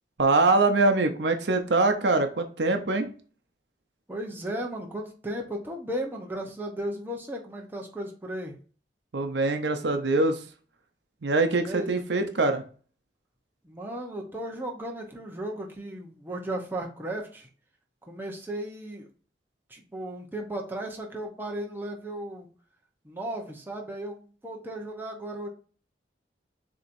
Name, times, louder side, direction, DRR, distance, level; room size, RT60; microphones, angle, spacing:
voice 1, 0.2-3.1 9.1-10.4 11.2-12.6, right 3 dB, 75° right, 7 dB, 0.7 m, -23 dB
voice 2, 4.1-8.6 11.6-11.9 13.6-17.5 18.1-19.1 19.7-22.5 23.0-25.5, right 1 dB, 10° right, 0 dB, 0.8 m, -35 dB
7.0 x 2.9 x 2.6 m, 0.40 s
head